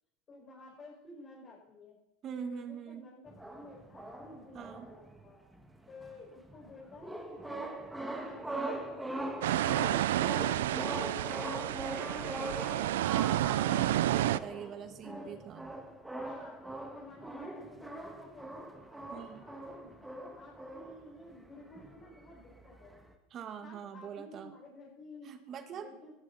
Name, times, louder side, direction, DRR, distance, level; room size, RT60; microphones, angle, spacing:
voice 1, 0.3-2.0 2.4-5.4 5.9-7.8 8.2-14.1 15.0-15.4 16.2-18.7 19.3-20.0 20.3-23.0 23.6-25.3 25.7-26.2, left 2 dB, 30° left, -6 dB, 5.6 m, -53 dB
voice 2, 2.2-3.1 4.5-4.9 13.0-15.7 19.1-19.5 23.3-24.5 25.2-25.9, right 8 dB, 35° right, 9 dB, 1.5 m, -42 dB
sound 1, 3.3-23.1, right 1 dB, 5° right, 1.9 m, -42 dB
sound 2, 9.4-14.4, right 13 dB, 90° right, 0.5 m, -30 dB
18.0 x 15.0 x 4.2 m, 0.90 s
supercardioid pair, 125°, 0 cm